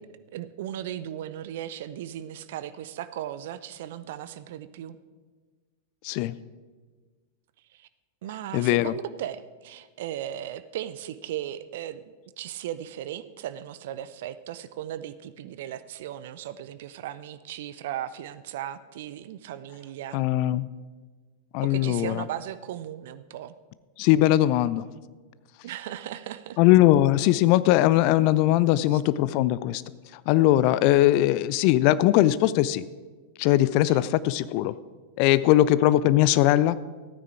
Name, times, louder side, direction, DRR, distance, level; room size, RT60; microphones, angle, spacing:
voice 1, 0.3-5.0 7.7-7.9 8.2-20.2 21.6-23.6 25.6-26.6 28.9-29.0 33.9-34.0 35.6-35.8, right 11 dB, 55° right, 14 dB, 0.5 m, -37 dB
voice 2, 6.0-6.3 8.5-8.9 20.1-20.7 21.5-22.2 24.0-24.9 26.6-29.8 30.1-32.8 33.4-34.7 35.2-36.8, left 14 dB, 45° left, 17 dB, 0.4 m, -20 dB
14.5 x 9.4 x 4.8 m, 1.4 s
figure-of-eight pair, 90°, 0 cm